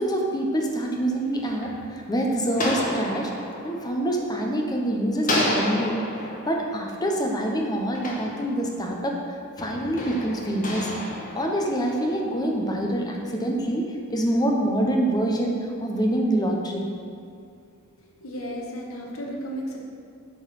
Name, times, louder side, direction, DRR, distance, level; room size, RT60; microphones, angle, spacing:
voice 1, 0.0-3.3 3.6-6.0 6.5-9.2 9.6-10.9 11.3-13.8 14.1-16.9, right 1 dB, 20° left, 1 dB, 0.8 m, -25 dB
sound 1, 1.0-4.8 5.2-9.0 9.6-12.2, left 1 dB, 40° left, 1.3 m, -32 dB
voice 2, 18.2-19.8, equal, 70° left, -2 dB, 1.2 m, -33 dB
8.3 x 4.0 x 6.4 m, 2.3 s
head